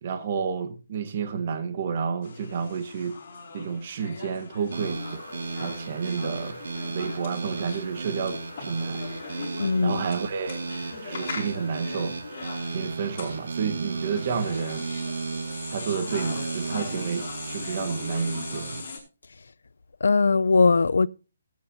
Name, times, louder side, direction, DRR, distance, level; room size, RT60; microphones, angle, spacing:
voice 1, 0.0-3.2 3.5-5.2 5.6-6.6 6.9-9.0 9.8-10.6 11.0-12.2 12.7-14.8 15.7-18.7, right 6 dB, 35° right, 1.2 m, -30 dB
sound 1, 2.2-19.0, left 4 dB, 40° left, 5.2 m, -40 dB
sound 2, 4.7-18.8, right 4 dB, 70° right, 1.9 m, -34 dB
voice 2, 9.6-10.0 20.0-21.1, left 4 dB, 85° left, 0.5 m, -20 dB
18.0 x 9.3 x 2.7 m
hypercardioid pair, 170°, 0 cm